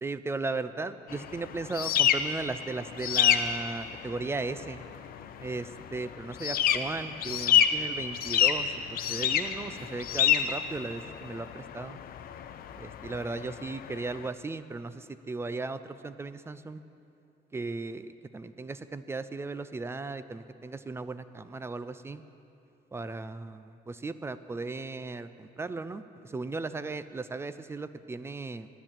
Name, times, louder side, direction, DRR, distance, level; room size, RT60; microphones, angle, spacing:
voice 1, 0.0-4.8 5.4-12.0 12.7-16.8 17.5-22.2 22.9-28.7, right 3 dB, 15° right, 13 dB, 0.3 m, -36 dB
sound 1, 1.1-14.3, left 9 dB, 65° left, 0.6 m, -29 dB
12.0 x 10.5 x 7.4 m, 2.6 s
cardioid pair, 165°, 16 cm